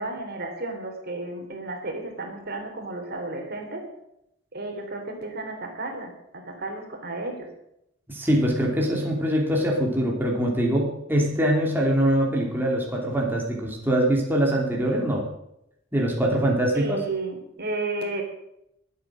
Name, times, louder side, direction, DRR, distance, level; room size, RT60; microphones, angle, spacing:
voice 1, 0.0-3.8 4.5-6.1 6.5-7.4 16.7-18.2, right 2 dB, 55° right, 3 dB, 3.6 m, -32 dB
voice 2, 8.1-15.2 15.9-17.0, right 1 dB, 10° right, -2 dB, 3.0 m, -23 dB
22.5 x 8.3 x 6.3 m, 0.80 s
head